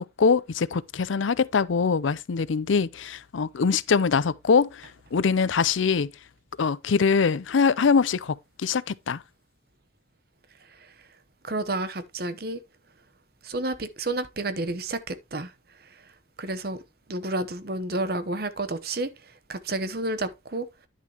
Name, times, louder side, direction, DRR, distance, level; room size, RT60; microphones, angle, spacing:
voice 1, 0.0-6.1 6.6-9.2, left 5 dB, 90° left, 0.5 m, -23 dB
voice 2, 11.4-12.6 13.4-15.5 16.4-16.8 17.1-19.1 19.5-20.9, right 2 dB, 55° right, 1.0 m, -30 dB
10.5 x 6.4 x 2.9 m
head